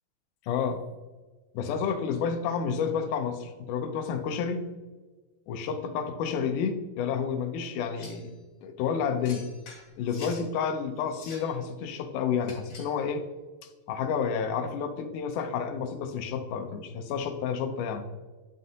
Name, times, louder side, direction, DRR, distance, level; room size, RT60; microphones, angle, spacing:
voice 1, 0.5-0.8 1.5-4.7 5.5-8.3 8.6-9.4 10.0-13.2 13.9-18.1, left 6 dB, 75° left, 6 dB, 2.0 m, -30 dB
sound 1, 7.9-8.3 9.2-10.4 11.0-11.6 12.4-13.0, left 3 dB, 45° left, 2.4 m, -47 dB
9.6 x 7.8 x 2.8 m, 1.3 s
omnidirectional pair, 4.4 m